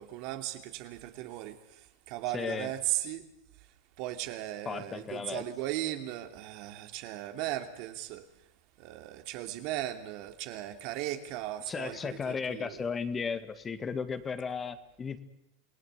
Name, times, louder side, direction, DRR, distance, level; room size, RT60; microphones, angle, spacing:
voice 1, 0.0-1.6 2.1-3.2 4.0-8.3 8.8-12.8, right 14 dB, 60° right, 6 dB, 2.9 m, -37 dB
voice 2, 2.3-2.7 4.7-5.4 11.7-15.2, left 5 dB, 20° left, 10 dB, 2.0 m, -35 dB
28.5 x 18.0 x 8.3 m, 0.80 s
supercardioid pair, 120°, 0 cm